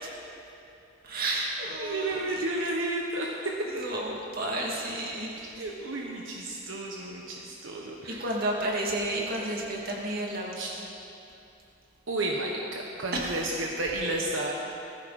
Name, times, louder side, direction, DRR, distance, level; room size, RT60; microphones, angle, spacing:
voice 1, 1.0-2.7 3.7-5.6 8.1-10.6 13.1-13.5, right 1 dB, 50° right, -2 dB, 2.7 m, -32 dB
voice 2, 1.8-3.4 5.6-8.2 10.6-10.7 12.1-14.5, right 2 dB, 80° right, -1 dB, 1.3 m, -32 dB
19.0 x 15.0 x 4.3 m, 2.8 s
head